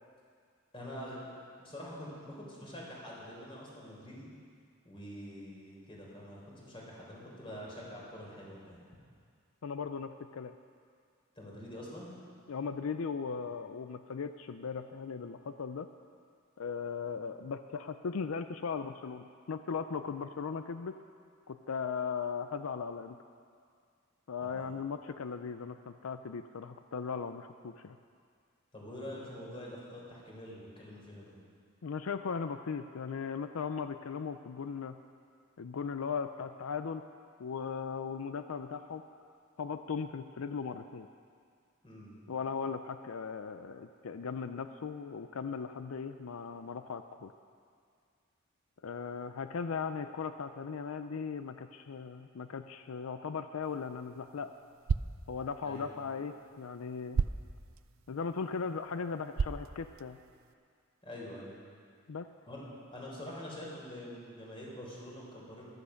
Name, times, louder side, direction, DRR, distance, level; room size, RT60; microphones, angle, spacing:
voice 1, 0.7-1.2 1.6-4.3 4.8-8.9 11.4-12.1 24.4-24.8 28.7-31.4 41.8-42.2 55.6-55.9 61.0-61.6 62.4-62.6 62.9-65.6, left 1 dB, 25° left, -4 dB, 3.8 m, -45 dB
voice 2, 9.6-10.5 12.5-15.9 16.6-21.0 21.5-23.2 24.3-28.0 31.8-35.0 35.6-37.0 37.4-39.0 39.6-41.1 42.3-47.3 48.8-54.5 55.3-57.2 58.1-60.2 62.1-62.3, left 5 dB, 85° left, 9 dB, 0.5 m, -38 dB
sound 1, 53.6-60.5, right 5 dB, 70° right, 0.4 m, -38 dB
15.0 x 12.0 x 5.7 m, 2.2 s
head